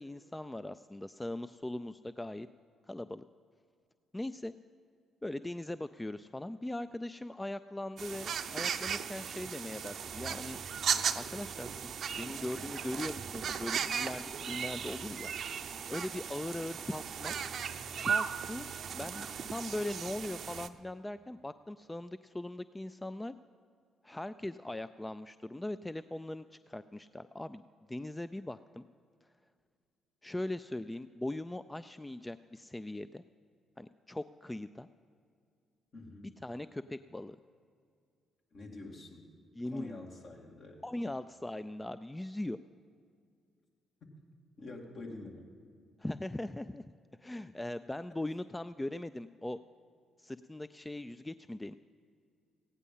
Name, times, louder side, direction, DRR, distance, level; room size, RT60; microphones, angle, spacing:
voice 1, 0.0-2.5 2.9-3.2 4.1-4.5 5.2-10.6 11.1-15.3 15.9-17.4 18.0-23.4 24.0-27.6 27.9-28.8 29.2-29.3 30.2-33.2 33.8-34.9 36.4-37.4 39.5-39.9 40.8-42.6 46.0-46.9 47.2-49.6 50.2-51.8, left 1 dB, 15° left, 13 dB, 0.3 m, -40 dB
sound 1, 8.0-20.7, right 7 dB, 60° right, 0.6 m, -37 dB
voice 2, 35.9-36.4 38.5-39.3 39.7-40.8 44.0-44.1 44.6-45.5, left 2 dB, 55° left, 0 dB, 2.3 m, -47 dB
16.0 x 9.7 x 5.5 m, 2.2 s
hypercardioid pair, 50°, 0 cm